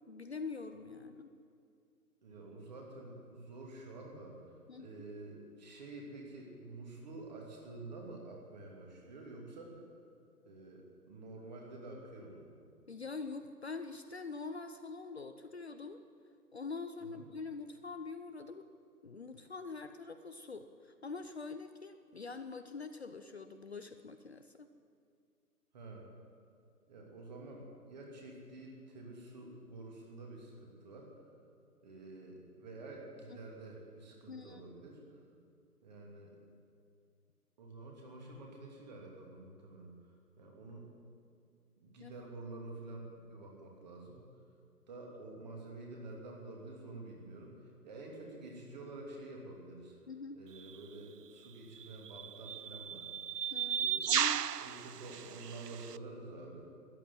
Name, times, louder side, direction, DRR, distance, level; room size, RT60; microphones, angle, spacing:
voice 1, 0.1-1.3 4.7-4.9 12.9-16.0 16.5-18.7 19.0-24.7 33.3-33.4 34.3-34.6 42.0-42.1 50.1-50.4 53.5-54.4, left 4 dB, 45° left, 8 dB, 0.7 m, -44 dB
voice 2, 2.2-4.4 4.8-9.8 10.4-12.4 17.0-17.2 25.7-26.1 26.9-31.1 31.8-35.0 35.8-36.4 37.6-39.9 40.4-40.9 41.8-44.2 44.9-50.0 50.4-53.1 53.8-54.2 54.6-56.7, right 2 dB, 25° right, -1 dB, 2.7 m, -49 dB
sound 1, 50.6-50.7 51.8-56.0, right 8 dB, 80° right, 0.6 m, -35 dB
13.5 x 11.0 x 9.5 m, 2.4 s
figure-of-eight pair, 145°, 47 cm